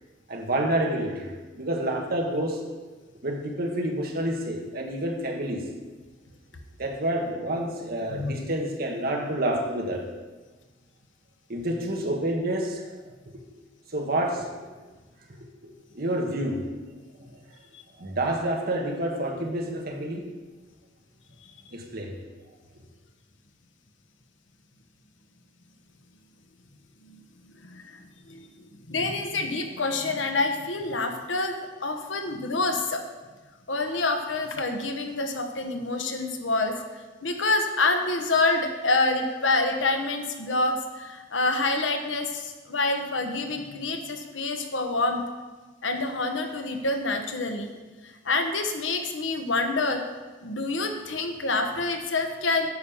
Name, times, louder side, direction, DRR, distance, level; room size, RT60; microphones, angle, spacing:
voice 1, 0.3-2.6 3.2-5.6 6.8-10.1 11.5-13.1 13.9-14.7 15.9-16.7 17.2-17.3 18.0-20.3 21.7-22.2, right 1 dB, 55° right, 1 dB, 1.5 m, -28 dB
voice 2, 27.6-33.0 33.7-45.2 45.8-47.7 48.0-50.0 50.4-52.7, left 3 dB, 85° left, 5 dB, 1.1 m, -27 dB
9.4 x 5.5 x 7.0 m, 1.3 s
head